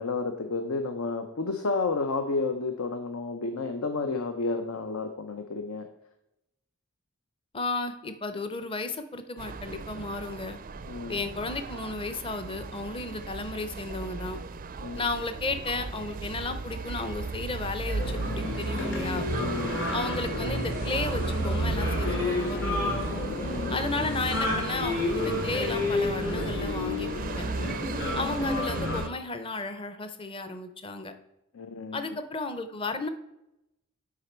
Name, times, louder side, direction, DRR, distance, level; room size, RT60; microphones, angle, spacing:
voice 1, 0.0-5.9 10.8-11.2 14.8-15.0 19.4-19.9 23.4-23.9 27.9-28.3 31.5-32.0, left 3 dB, 80° left, 7 dB, 0.7 m, -31 dB
voice 2, 7.5-10.6 11.1-14.4 14.9-19.3 19.9-22.8 23.7-27.5 28.1-31.1 31.9-33.1, left 3 dB, 25° left, 9 dB, 0.7 m, -33 dB
sound 1, 9.4-29.1, right 3 dB, 40° right, 0.4 m, -35 dB
sound 2, 18.0-29.0, left 2 dB, 60° left, 2.3 m, -31 dB
8.5 x 5.0 x 4.4 m, 0.88 s
head